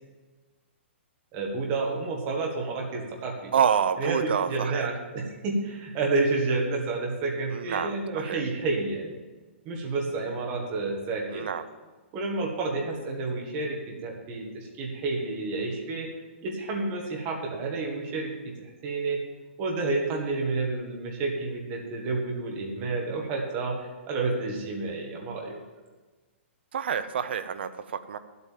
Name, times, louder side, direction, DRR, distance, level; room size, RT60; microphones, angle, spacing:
voice 1, 1.3-3.5 4.0-9.1 9.6-11.5 12.1-16.1 16.4-18.3 18.6-19.2 19.6-25.6, right 3 dB, 20° right, 0 dB, 1.7 m, -30 dB
voice 2, 3.5-4.9 7.5-8.4 11.3-11.6 26.7-28.2, right 7 dB, 55° right, 10 dB, 0.8 m, -28 dB
11.0 x 8.1 x 7.4 m, 1.3 s
hypercardioid pair, 180°, 7 cm